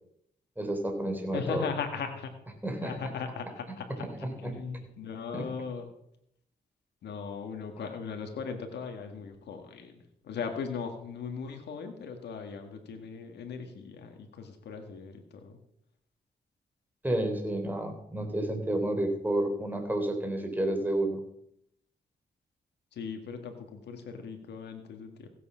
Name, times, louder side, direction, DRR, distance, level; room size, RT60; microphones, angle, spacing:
voice 1, 0.6-1.6 2.6-2.9 4.0-4.5 5.3-5.4 17.0-21.2, right 1 dB, 10° right, 4 dB, 3.4 m, -30 dB
voice 2, 1.3-2.3 2.8-5.9 7.0-15.6 22.9-25.3, left 5 dB, 90° left, 5 dB, 1.8 m, -38 dB
16.0 x 8.3 x 5.7 m, 0.74 s
cardioid pair, 70°, 17 cm